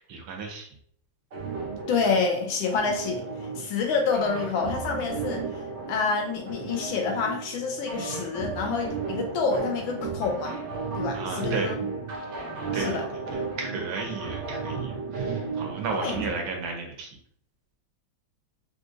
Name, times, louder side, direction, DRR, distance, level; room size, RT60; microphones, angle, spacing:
voice 1, 0.1-0.7 11.1-11.8 12.7-13.2 13.6-17.2, right 4 dB, 75° right, 2 dB, 1.4 m, -33 dB
sound 1, 1.3-16.3, right 4 dB, 90° right, 0.6 m, -34 dB
voice 2, 1.9-3.3 3.6-5.5 5.9-10.6 10.9-11.7 12.8-13.1 15.9-16.4, left 4 dB, 75° left, 3 dB, 1.3 m, -28 dB
3.8 x 2.6 x 2.5 m, 0.62 s
omnidirectional pair, 2.3 m